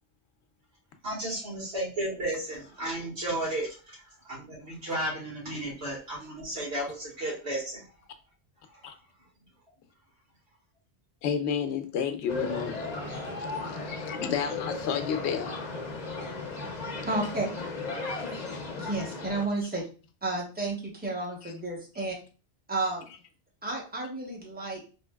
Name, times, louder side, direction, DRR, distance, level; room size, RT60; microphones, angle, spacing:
voice 1, 1.0-7.8 8.8-8.9 13.0-13.3, right 1 dB, 80° right, -4 dB, 1.9 m, -34 dB
voice 2, 11.2-12.9 13.6-15.6 21.4-21.5, left 7 dB, 80° left, 8 dB, 0.9 m, -31 dB
sound 1, 12.3-19.5, left 3 dB, 45° left, 0.7 m, -35 dB
voice 3, 17.1-17.5 18.8-19.8 20.2-22.2 22.7-23.1 23.6-24.8, right 2 dB, 10° right, -2 dB, 0.9 m, -31 dB
4.3 x 2.7 x 2.2 m, 0.35 s
omnidirectional pair, 1.1 m